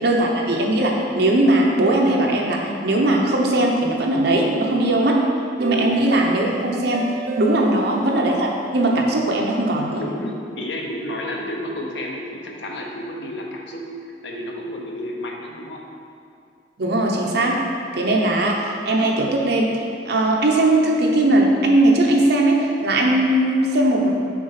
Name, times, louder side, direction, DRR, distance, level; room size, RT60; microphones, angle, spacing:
voice 1, 0.0-5.2 5.6-7.0 7.4-10.0 16.8-17.6 17.9-24.1, right 1 dB, 65° right, -1 dB, 0.9 m, -19 dB
sound 1, 4.6-9.6, right 4 dB, 45° right, 0.3 m, -33 dB
voice 2, 10.0-13.9 14.2-15.8, left 1 dB, 80° left, 0 dB, 0.9 m, -31 dB
6.2 x 3.9 x 5.9 m, 2.4 s
head